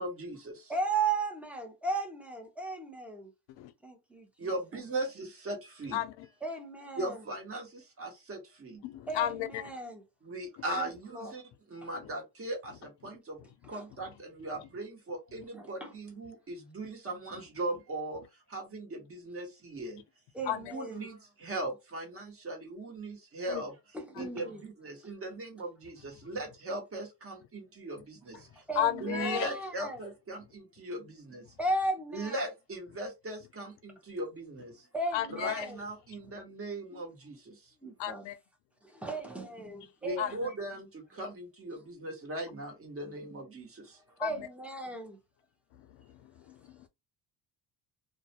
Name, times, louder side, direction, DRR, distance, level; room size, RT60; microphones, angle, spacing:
voice 1, 0.0-0.7 4.4-6.0 7.0-8.8 10.2-11.4 11.7-13.4 13.7-18.2 18.5-20.0 20.7-23.7 24.2-28.6 29.0-31.4 32.1-34.9 35.4-37.7 40.0-44.0, right 2 dB, 30° right, 1.0 m, -39 dB
voice 2, 0.7-3.3 3.8-4.9 6.4-7.3 9.1-10.0 10.7-11.4 11.8-11.9 13.4-13.9 15.5-16.0 20.3-21.1 23.9-24.6 28.7-30.0 31.6-32.5 34.9-35.9 36.9-37.0 37.8-38.2 38.8-40.6 44.2-45.2, right 3 dB, 5° right, 0.6 m, -36 dB
voice 3, 5.9-6.3 8.8-9.6 12.0-12.1 20.4-20.7 23.5-23.6 24.2-24.3 28.8-29.5 35.1-35.7 38.0-38.4 40.2-40.4 44.2-44.3 46.0-46.9, left 12 dB, 85° left, 0.5 m, -33 dB
2.3 x 2.1 x 2.7 m
cardioid pair, 130°, 42 cm